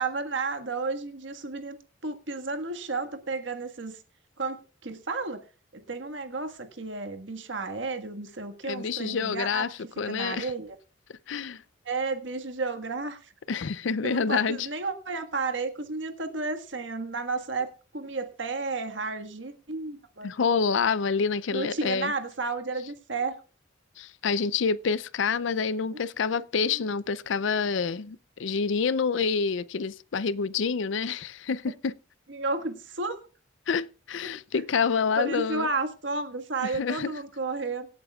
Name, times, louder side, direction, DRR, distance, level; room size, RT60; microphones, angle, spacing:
voice 1, 0.0-1.8 2.0-4.0 4.4-5.4 5.7-10.8 11.8-13.3 14.0-20.3 21.5-23.4 26.2-26.4 26.6-26.8 32.3-33.3 34.2-34.3 35.2-37.9, right 3 dB, 70° right, 1.6 m, -32 dB
voice 2, 8.7-9.7 10.0-10.5 11.3-11.6 13.5-14.7 20.2-22.1 24.0-31.9 33.7-35.7 36.6-37.1, left 5 dB, 70° left, 0.5 m, -27 dB
24.5 x 8.5 x 2.4 m
head